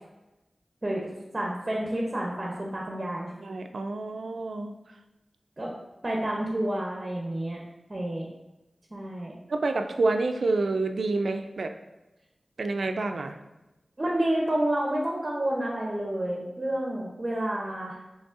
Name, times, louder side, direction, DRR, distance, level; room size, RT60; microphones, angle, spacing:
voice 1, 0.8-3.3 5.6-5.8 6.0-7.6 7.9-8.3 8.9-9.3 14.0-18.0, right 1 dB, 35° right, -2 dB, 0.6 m, -29 dB
voice 2, 3.4-4.7 9.5-11.7 12.6-13.4, right 3 dB, 85° right, 6 dB, 0.3 m, -28 dB
5.2 x 3.1 x 2.4 m, 1.0 s
wide cardioid pair, 55°, 0 cm